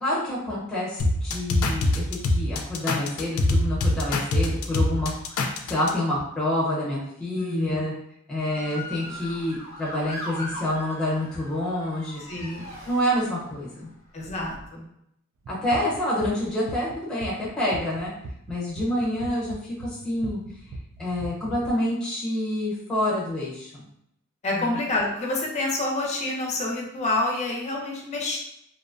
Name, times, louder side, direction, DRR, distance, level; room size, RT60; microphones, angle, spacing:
voice 1, 0.0-7.9 8.3-12.2 12.9-13.9 15.5-18.1 18.5-20.4 21.0-23.8 24.5-24.8, left 1 dB, 5° left, -6 dB, 0.8 m, -28 dB
sound 1, 1.0-5.9, left 2 dB, 85° left, 0.4 m, -23 dB
voice 2, 7.3-7.8 12.3-12.7 14.1-14.9 24.4-28.4, left 2 dB, 30° left, -1 dB, 0.5 m, -28 dB
Motor vehicle (road) / Siren, 8.4-13.6 14.2-14.7, left 1 dB, 30° right, 0.8 m, -39 dB
sound 2, 15.4-21.7, right 2 dB, 60° right, 0.3 m, -38 dB
2.5 x 2.1 x 2.5 m, 0.76 s
head